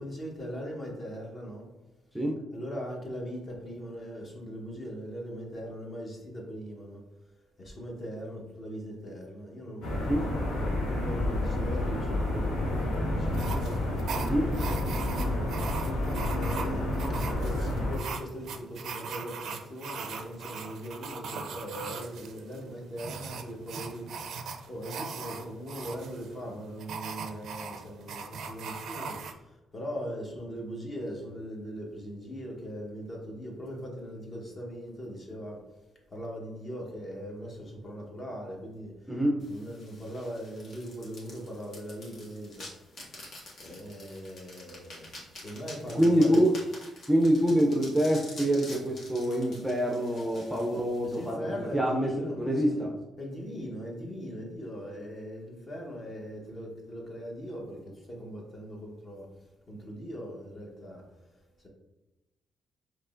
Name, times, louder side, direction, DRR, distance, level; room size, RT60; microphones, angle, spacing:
voice 1, 0.0-1.7 2.5-7.0 7.3-13.9 14.4-15.4 16.3-35.6 36.1-39.1 39.4-43.0 43.6-46.4 50.7-52.9 53.2-61.7, equal, 35° left, -1 dB, 1.2 m, -40 dB
sound 1, 9.8-18.0, left 1 dB, 85° left, 1.0 m, -30 dB
sound 2, 13.3-29.3, right 5 dB, 70° right, 0.4 m, -40 dB
voice 2, 14.2-14.5 39.1-39.4 45.9-46.5 47.1-52.9, equal, 5° right, -2 dB, 0.6 m, -26 dB
sound 3, 39.4-51.3, left 2 dB, 60° left, 1.4 m, -48 dB
4.5 x 3.1 x 2.5 m, 1.0 s
cardioid pair, 90°, 0 cm